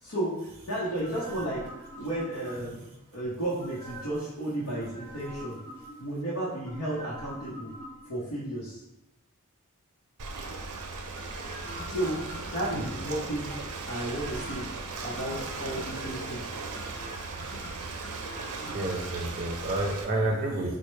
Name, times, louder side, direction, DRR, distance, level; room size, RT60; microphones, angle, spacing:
voice 1, 0.0-2.8 3.1-5.6 6.0-7.7 8.1-8.8 11.8-13.5 13.9-14.7 15.0-16.5, right 1 dB, 70° left, -8 dB, 0.8 m, -33 dB
sound 1, 1.0-2.8 3.6-4.3 4.7-6.2 6.6-8.3 11.1-13.3 13.8-14.8 15.1-16.3 16.7-19.1 19.4-19.5, equal, 15° left, 0.6 m, -45 dB
Ocean, 10.2-20.0, right 3 dB, 90° right, 0.5 m, -37 dB
voice 2, 18.7-20.8, right 2 dB, 35° right, -1 dB, 0.5 m, -29 dB
4.2 x 2.1 x 3.2 m, 0.92 s
head